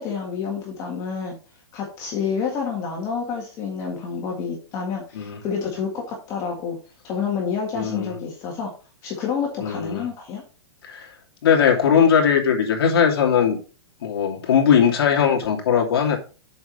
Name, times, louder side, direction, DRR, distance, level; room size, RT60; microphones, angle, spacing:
voice 1, 0.0-1.4 1.7-6.8 7.0-8.7 9.0-10.4, left 6 dB, 20° left, -1 dB, 1.8 m, -28 dB
voice 2, 7.7-8.1 9.6-10.1 10.8-11.1 11.4-13.6 14.0-16.2, left 7 dB, 60° left, 1 dB, 2.4 m, -19 dB
7.0 x 5.0 x 5.3 m, 0.36 s
hypercardioid pair, 170°, 14 cm